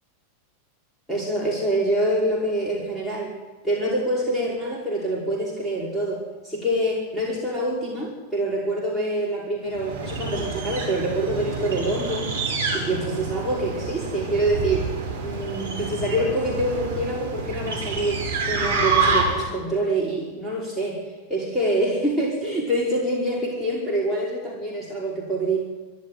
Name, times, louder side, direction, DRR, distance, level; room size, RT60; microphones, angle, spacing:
voice 1, 1.1-3.3 3.6-12.3 12.7-14.9 15.2-21.0 21.3-25.6, right 1 dB, 5° left, -4 dB, 5.3 m, -26 dB
sound 1, 9.7-19.6, right 4 dB, 70° right, 6.1 m, -27 dB
27.0 x 11.5 x 9.7 m, 1.2 s
figure-of-eight pair, 90°, 0 cm